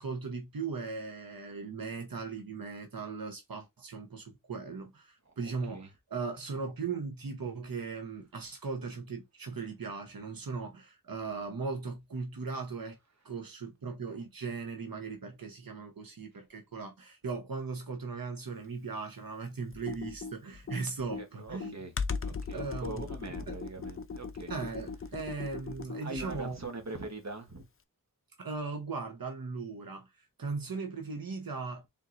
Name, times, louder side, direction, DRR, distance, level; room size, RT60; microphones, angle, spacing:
voice 1, 0.0-13.0 13.2-21.7 22.5-23.1 23.5-23.6 24.5-26.6 28.4-31.9, right 4 dB, 85° right, 0.9 m, -38 dB
Computer keyboard, 19.7-26.6, left 5 dB, 40° left, 0.5 m, -39 dB
voice 2, 21.2-21.9 22.2-24.5 26.0-27.6, right 2 dB, 50° right, 1.2 m, -42 dB
4.3 x 3.6 x 2.5 m
wide cardioid pair, 55°, 34 cm